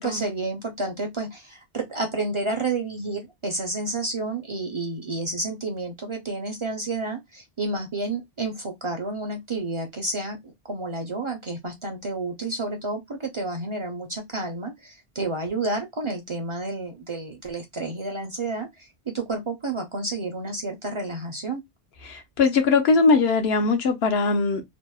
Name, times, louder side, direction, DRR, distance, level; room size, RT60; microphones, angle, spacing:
voice 1, 0.0-21.6, right 2 dB, 40° right, 0.4 m, -30 dB
voice 2, 22.0-24.6, left 4 dB, 80° left, 0.9 m, -21 dB
2.8 x 2.0 x 2.2 m
omnidirectional pair, 1.0 m